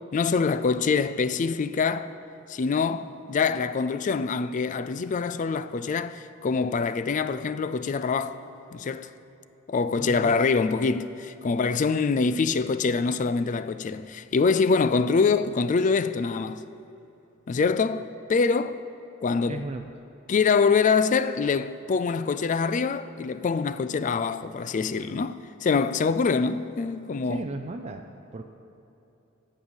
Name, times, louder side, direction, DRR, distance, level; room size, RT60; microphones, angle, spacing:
voice 1, 0.1-2.1 2.5-8.4 8.7-9.1 9.7-16.6 17.5-18.8 19.2-19.6 20.3-27.4, left 5 dB, 35° left, 0.3 m, -25 dB
voice 2, 10.0-10.3 19.5-19.9 27.2-28.1 28.3-28.4, right 2 dB, 30° right, 0.4 m, -35 dB
15.0 x 5.5 x 7.9 m
head